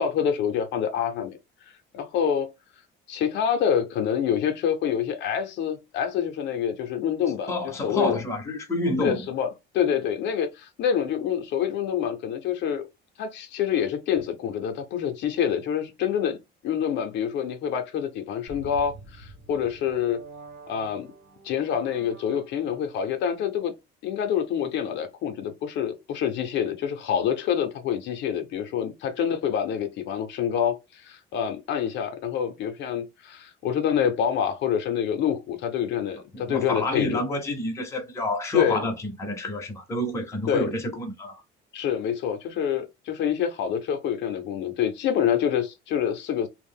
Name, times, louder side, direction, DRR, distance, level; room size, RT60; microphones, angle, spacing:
voice 1, 0.0-1.4 1.9-2.5 3.1-7.5 7.8-8.2 9.0-9.5 9.7-12.8 13.2-16.4 16.6-20.2 20.7-21.1 21.4-23.7 24.0-37.2 38.5-38.8 40.5-40.7 41.7-46.5, left 8 dB, 55° left, 0.5 m, -26 dB
voice 2, 7.5-9.3 36.3-41.4, left 1 dB, 15° left, 0.6 m, -29 dB
sound 1, 18.5-22.9, right 2 dB, 55° right, 0.7 m, -46 dB
2.4 x 2.0 x 3.4 m
cardioid pair, 155°, 21 cm